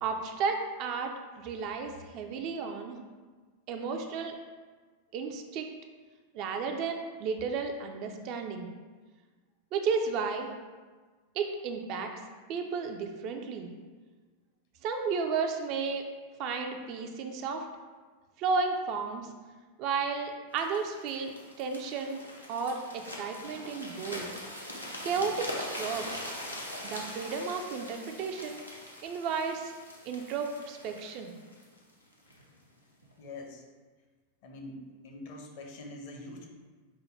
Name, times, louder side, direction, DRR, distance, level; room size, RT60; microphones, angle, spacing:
voice 1, 0.0-3.0 3.7-4.3 5.1-5.7 6.3-8.7 9.7-10.5 11.4-12.1 12.5-13.7 14.8-16.0 16.4-17.7 18.4-19.3 19.8-21.3 21.6-22.2 22.5-24.3 25.0-26.2 26.8-28.6 29.0-29.7 30.0-31.3, right 5 dB, 40° right, 4 dB, 0.4 m, -33 dB
sound 1, 20.6-32.4 33.0-33.2, left 1 dB, 85° left, 0.7 m, -42 dB
voice 2, 33.2-33.6 34.4-36.5, left 2 dB, 50° left, 1 dB, 0.7 m, -44 dB
5.5 x 2.2 x 3.2 m, 1.4 s
figure-of-eight pair, 90°, 0 cm